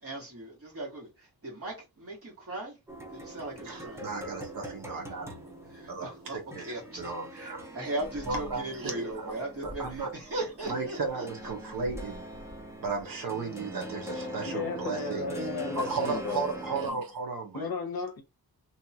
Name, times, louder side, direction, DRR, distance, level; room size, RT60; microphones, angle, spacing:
voice 1, 0.0-2.8 3.1-4.0 5.7-6.4 6.7-11.5, right 2 dB, 35° right, 1.5 m, -38 dB
sound 1, 2.9-16.9, equal, 5° right, 0.5 m, -42 dB
voice 2, 3.6-5.3 5.9-7.7 8.3-9.3 9.6-10.1 10.7-12.2 12.8-15.5 15.7-17.7, right 4 dB, 60° right, 0.8 m, -35 dB
voice 3, 14.5-16.4 17.5-18.2, left 3 dB, 65° left, 0.8 m, -34 dB
2.8 x 2.3 x 2.7 m
wide cardioid pair, 155°, 39 cm